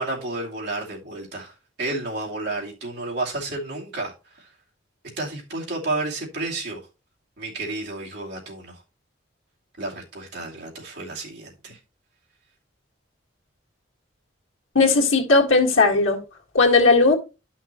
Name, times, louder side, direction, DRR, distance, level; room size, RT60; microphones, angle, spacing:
voice 1, 0.0-4.5 5.2-6.8 7.4-8.8 9.8-11.8, right 2 dB, 55° right, 2.6 m, -31 dB
voice 2, 14.8-16.2 16.5-17.2, left 3 dB, 85° left, 1.9 m, -17 dB
11.5 x 5.8 x 3.0 m
head